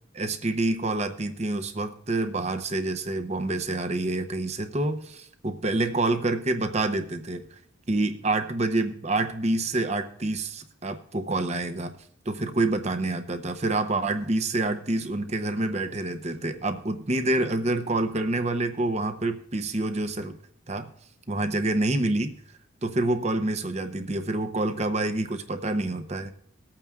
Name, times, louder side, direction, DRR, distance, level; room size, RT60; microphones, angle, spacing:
voice 1, 0.1-7.5 7.9-11.9 12.3-20.4 20.7-20.9 21.3-22.4 22.8-26.3, right 2 dB, 30° right, 8 dB, 0.7 m, -27 dB
20.5 x 8.7 x 2.4 m, 0.67 s
head